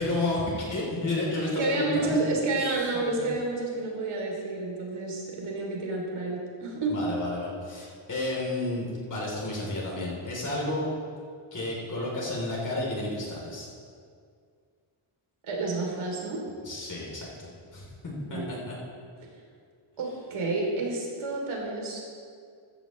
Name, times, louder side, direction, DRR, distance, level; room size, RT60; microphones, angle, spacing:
voice 1, 0.0-2.2 3.1-3.3 6.9-10.9 11.5-13.7 16.6-17.9 18.3-18.8, left 2 dB, 40° left, -4 dB, 3.5 m, -31 dB
voice 2, 1.6-6.9 15.4-16.4 18.3-18.6 20.0-22.0, right 2 dB, 75° right, -2 dB, 3.2 m, -30 dB
15.0 x 14.0 x 3.2 m, 2.2 s
wide cardioid pair, 170°, 49 cm